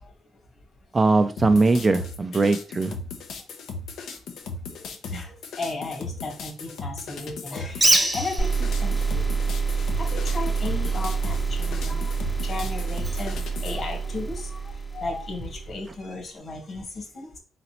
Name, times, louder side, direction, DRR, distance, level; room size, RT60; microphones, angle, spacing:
voice 1, 0.9-2.9, right 3 dB, 30° right, 0.4 m, -20 dB
sound 1, 1.4-13.7, left 3 dB, 75° left, 0.8 m, -37 dB
voice 2, 5.1-9.3 9.7-12.1 12.4-17.4, left 3 dB, 50° left, 1.9 m, -35 dB
Bird, 7.7-14.4, right 1 dB, 15° right, 0.9 m, -30 dB
sound 2, 8.4-15.9, right 5 dB, 30° left, 0.9 m, -27 dB
4.0 x 4.0 x 3.0 m
cardioid pair, 90°, 0 cm